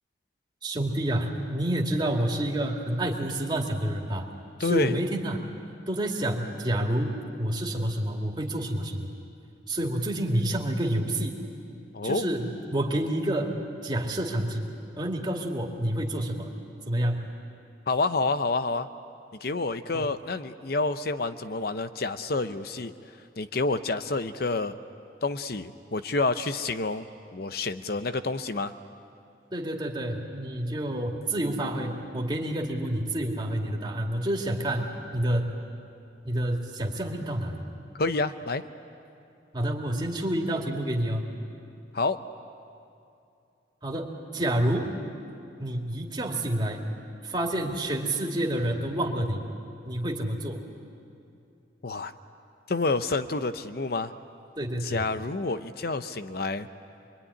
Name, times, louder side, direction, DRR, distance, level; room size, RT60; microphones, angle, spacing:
voice 1, 0.6-4.3 4.6-5.5 5.9-9.1 9.7-11.4 12.0-14.7 15.0-16.5 16.9-17.3 19.9-20.1 29.5-35.6 36.2-37.6 39.5-41.2 43.8-44.9 45.6-46.8 47.2-49.5 49.9-50.6 54.6-55.0, right 1 dB, 25° right, 0 dB, 2.4 m, -28 dB
voice 2, 4.6-5.0 11.9-12.2 17.9-18.9 19.4-22.9 23.4-24.8 25.2-27.1 27.3-28.7 38.0-38.6 41.9-42.2 51.8-52.1 52.7-54.1 54.8-56.7, left 3 dB, 55° left, 10 dB, 0.7 m, -28 dB
26.0 x 23.0 x 9.8 m, 2.6 s
head